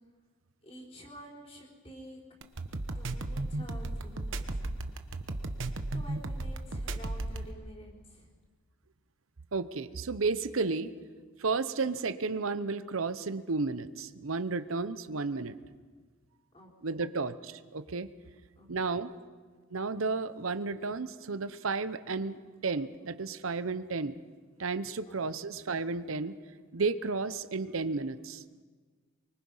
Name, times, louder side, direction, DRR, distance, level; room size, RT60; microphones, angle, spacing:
voice 1, 0.6-2.2 2.9-4.6 5.5-5.6 5.9-8.3 16.5-17.1 18.6-18.9 25.1-25.5, equal, 30° left, -3 dB, 4.3 m, -50 dB
sound 1, 2.4-7.5, right 2 dB, 70° right, 1.1 m, -34 dB
voice 2, 9.5-10.9 11.4-15.6 16.8-18.1 18.7-19.1 19.7-24.1 24.6-26.3 26.7-28.4, right 4 dB, 90° right, 13 dB, 0.8 m, -32 dB
24.5 x 24.0 x 5.6 m, 1.5 s
head